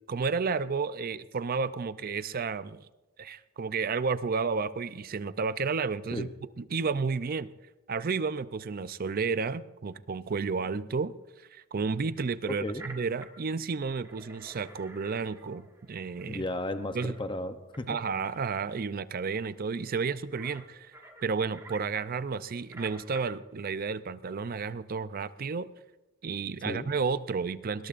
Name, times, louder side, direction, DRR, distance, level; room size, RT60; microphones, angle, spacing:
voice 1, 0.1-2.8 3.2-6.3 6.6-7.5 7.9-11.1 11.5-16.4 16.9-17.1 17.9-20.9 21.2-25.7 26.2-27.9, right 5 dB, 45° right, 15 dB, 0.5 m, -31 dB
sound 1, 12.8-13.3 13.7-16.4 17.0-17.1 17.7-17.8 18.2-18.3 18.6-18.7 19.9-20.0 20.2-23.2, right 2 dB, 15° right, 1.8 m, -49 dB
voice 2, 16.3-18.0 26.6-26.9, left 2 dB, 25° left, 8 dB, 0.7 m, -34 dB
20.5 x 20.5 x 2.5 m, 1.1 s
head